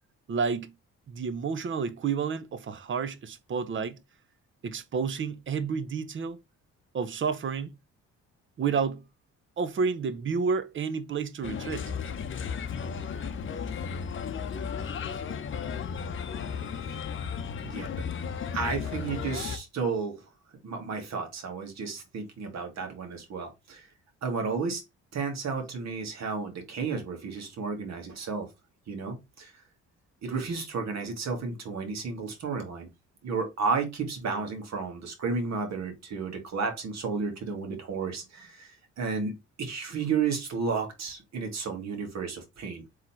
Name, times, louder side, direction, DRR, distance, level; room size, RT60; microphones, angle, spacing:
voice 1, 0.3-0.7 1.1-4.0 4.6-6.4 6.9-7.7 8.6-9.0 9.6-11.9, right 5 dB, 40° right, 0.7 m, -30 dB
Bird, 11.4-19.6, left 6 dB, 40° left, 0.7 m, -34 dB
voice 2, 17.6-18.1 18.5-20.2 20.6-23.9 24.2-24.8 25.1-28.5 28.9-29.5 30.2-32.9 33.2-39.3 39.6-42.8, right 5 dB, 60° right, 1.8 m, -32 dB
3.7 x 3.2 x 4.3 m
cardioid pair, 90°, 30 cm